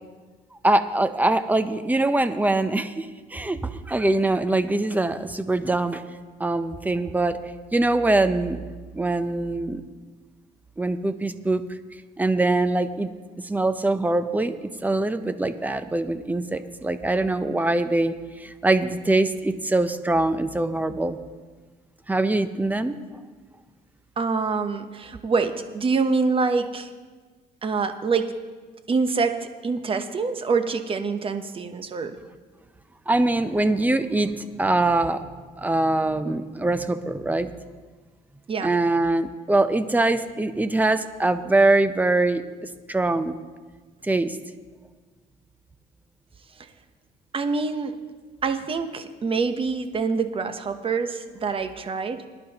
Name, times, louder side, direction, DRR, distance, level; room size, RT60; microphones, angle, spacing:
voice 1, 0.6-6.0 6.4-7.4 7.7-8.6 8.9-9.8 10.8-11.6 12.2-13.1 13.4-21.2 22.1-23.0 33.1-35.3 35.6-37.5 38.6-42.4 42.9-43.4 44.0-44.4, right 2 dB, 10° right, 11 dB, 0.6 m, -23 dB
voice 2, 24.2-26.9 27.6-28.3 28.9-32.2 38.5-38.7 46.6-46.7 47.3-48.0 48.4-52.2, right 4 dB, 30° right, 8 dB, 0.9 m, -25 dB
20.0 x 10.5 x 2.9 m, 1.4 s
cardioid pair, 110°, 17 cm